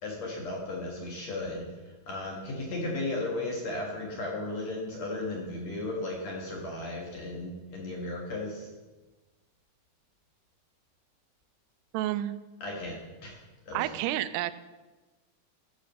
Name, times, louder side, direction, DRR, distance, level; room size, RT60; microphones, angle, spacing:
voice 1, 0.0-8.7 12.6-13.0 13.2-13.4 13.7-13.9, left 2 dB, 55° left, -1 dB, 2.2 m, -35 dB
voice 2, 11.9-12.4 13.7-14.5, right 14 dB, 90° right, 13 dB, 2.6 m, -30 dB
13.0 x 6.2 x 5.5 m, 1.2 s
omnidirectional pair, 4.6 m